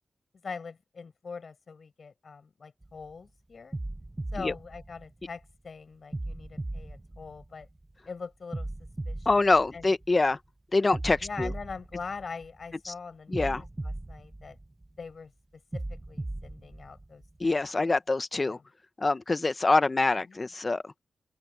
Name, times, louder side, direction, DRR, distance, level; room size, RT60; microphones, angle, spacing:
voice 1, 0.4-3.8 4.3-7.7 8.1-8.7 9.1-9.5 9.7-9.9 11.2-14.6 15.0-15.3 15.7-17.9 18.3-18.6 20.3-20.5, left 5 dB, 50° left, 5.4 m, -43 dB
sound 1, 2.8-3.1 3.7-5.5 6.1-7.9 8.5-10.3 10.9-12.7 13.3-15.1 15.7-17.5, right 2 dB, 15° right, 1.1 m, -38 dB
voice 2, 9.2-10.4 10.7-11.5 12.8-12.9 13.3-13.6 17.4-18.6 19.0-20.9, left 3 dB, 25° left, 0.9 m, -25 dB
open air
wide cardioid pair, 150°, 0 cm